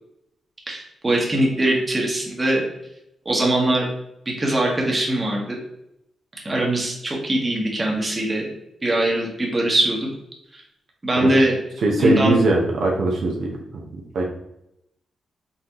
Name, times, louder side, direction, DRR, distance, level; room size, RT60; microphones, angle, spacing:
voice 1, 0.7-2.6 3.2-3.9 4.4-5.6 6.4-8.4 8.8-10.0 11.0-11.5 12.0-12.4, right 1 dB, 20° right, -1 dB, 1.2 m, -21 dB
voice 2, 11.8-13.5 14.1-14.2, right 2 dB, 65° right, -1 dB, 0.8 m, -20 dB
4.1 x 3.9 x 3.0 m, 0.81 s
cardioid pair, 120°, 0 cm